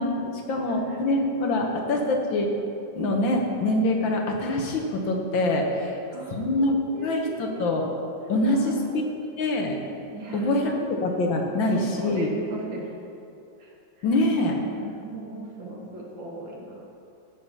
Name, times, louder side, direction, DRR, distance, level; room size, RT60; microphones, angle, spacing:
voice 1, 0.0-2.5 2.9-6.0 6.3-7.9 8.3-9.8 10.3-12.3 14.0-14.6, left 1 dB, 90° left, 1 dB, 2.0 m, -25 dB
voice 2, 0.7-1.0 1.4-1.7 5.8-8.0 8.5-9.1 10.1-10.6 11.7-12.9 13.6-14.1 14.4-16.8, right 2 dB, 85° right, -3 dB, 2.5 m, -39 dB
14.5 x 5.1 x 5.6 m, 2.6 s
omnidirectional pair, 2.0 m